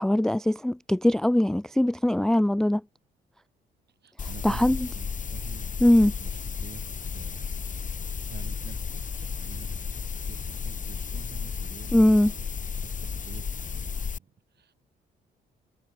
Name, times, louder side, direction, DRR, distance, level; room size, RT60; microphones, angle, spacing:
voice 1, 0.0-2.8 4.4-4.8 5.8-6.1 11.9-12.3, left 1 dB, 5° left, 0.3 m, -21 dB
voice 2, 3.9-6.8 7.1-9.0 9.3-9.8 10.1-12.5 12.8-14.7, right 8 dB, 55° right, 6.3 m, -48 dB
sound 1, 4.2-14.2, left 6 dB, 40° left, 2.0 m, -33 dB
sound 2, 5.6-9.6 10.1-10.3, left 19 dB, 85° left, 4.5 m, -62 dB
supercardioid pair, 60°, 20 cm